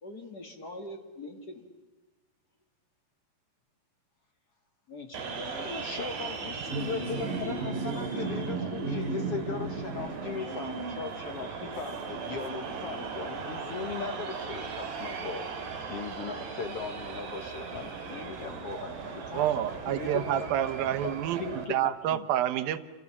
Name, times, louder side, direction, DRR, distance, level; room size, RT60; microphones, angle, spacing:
voice 1, 0.0-1.6 4.9-5.7, left 2 dB, 30° left, 5 dB, 2.2 m, -43 dB
sound 1, 5.1-21.7, right 4 dB, 70° right, 4.8 m, -36 dB
voice 2, 5.6-15.5 15.9-20.5 21.0-22.3, left 5 dB, 55° left, 7 dB, 1.7 m, -38 dB
voice 3, 19.3-21.4 21.7-22.8, right 12 dB, 90° right, 12 dB, 2.9 m, -28 dB
28.5 x 28.0 x 7.2 m, 1.2 s
omnidirectional pair, 4.1 m